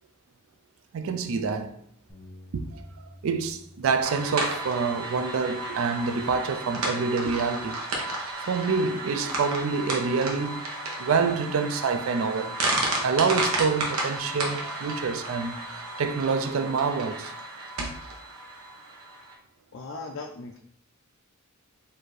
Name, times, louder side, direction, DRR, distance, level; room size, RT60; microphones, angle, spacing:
voice 1, 0.9-1.8 2.5-7.8 8.5-10.6 11.0-12.6 13.0-17.3 17.8-17.9, right 5 dB, 70° right, 0.3 m, -27 dB
Bass guitar, 2.1-6.6 7.2-8.3, left 1 dB, 15° left, 0.8 m, -52 dB
sound 1, 4.0-19.3, right 2 dB, 90° right, 0.9 m, -32 dB
voice 2, 19.7-20.6, left 4 dB, 60° left, 0.4 m, -38 dB
4.3 x 2.7 x 3.1 m
head